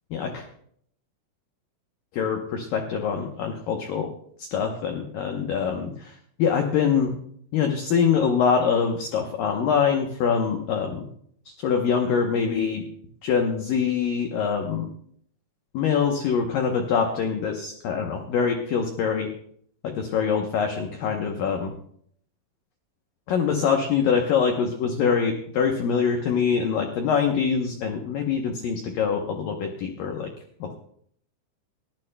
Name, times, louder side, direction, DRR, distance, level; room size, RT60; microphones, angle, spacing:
voice 1, 0.1-0.5 2.1-4.1 4.4-7.2 7.5-11.1 11.5-12.8 13.2-14.9 15.7-19.3 19.8-21.8 23.3-30.3 30.6-30.7, left 6 dB, 85° left, 3 dB, 1.9 m, -24 dB
20.5 x 15.0 x 2.2 m, 0.65 s
omnidirectional pair, 5.4 m